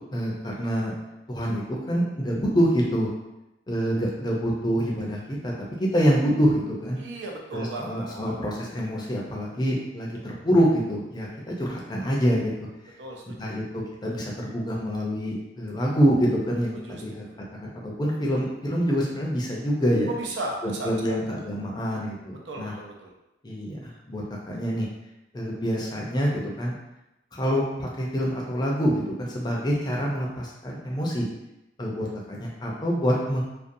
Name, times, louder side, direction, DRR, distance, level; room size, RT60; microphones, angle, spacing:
voice 1, 0.1-0.9 1.3-3.1 3.7-5.5 5.9-7.0 7.5-12.5 13.4-17.2 17.6-17.7 18.0-20.1 20.6-22.7 23.4-24.9 25.3-26.7 27.3-31.3 31.8-33.4, equal, 25° left, -3 dB, 0.4 m, -26 dB
voice 2, 7.0-8.4 13.0-13.6 16.8-17.4 20.1-21.1 22.5-23.1, right 2 dB, 85° right, 0 dB, 0.5 m, -36 dB
2.5 x 2.2 x 2.6 m, 0.92 s
head